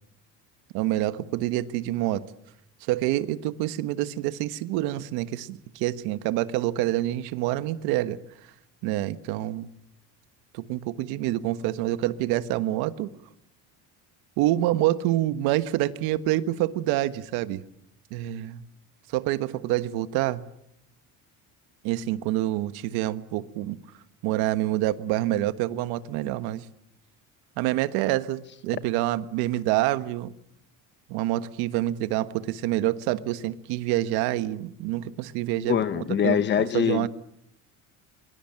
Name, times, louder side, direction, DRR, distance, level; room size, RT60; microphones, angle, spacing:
voice 1, 0.7-2.2 2.8-8.2 8.8-9.7 10.5-13.1 14.4-17.6 18.1-18.6 19.1-20.4 21.8-23.8 24.2-26.6 27.6-30.3 31.1-37.1, right 15 dB, 85° right, 13 dB, 1.5 m, -27 dB
voice 2, 35.7-37.1, left 9 dB, 30° left, 15 dB, 1.0 m, -23 dB
24.0 x 23.5 x 8.8 m, 0.75 s
cardioid pair, 165°, 37 cm